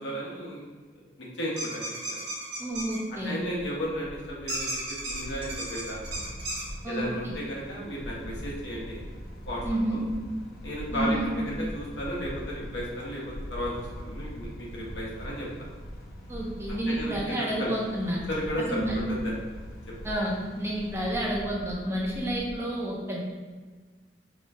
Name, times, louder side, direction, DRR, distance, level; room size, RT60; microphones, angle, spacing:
voice 1, 0.0-0.6 1.2-2.2 3.2-6.2 6.9-9.0 9.4-9.6 9.9-10.0 10.6-15.5 16.7-17.7 18.3-19.4, equal, 85° left, -5 dB, 1.0 m, -34 dB
sound 1, 1.6-3.0 4.5-6.6, right 1 dB, 75° right, 1.1 m, -34 dB
voice 2, 2.6-3.4 6.8-7.1 9.6-10.0 10.9-11.3 16.3-18.2 18.7-19.0 20.0-23.2, right 1 dB, 15° right, -3 dB, 0.5 m, -30 dB
sound 2, 2.7-22.6, equal, 45° right, 1.3 m, -42 dB
sound 3, 6.1-21.3, equal, 55° left, 0.7 m, -50 dB
2.9 x 2.3 x 4.1 m, 1.4 s
head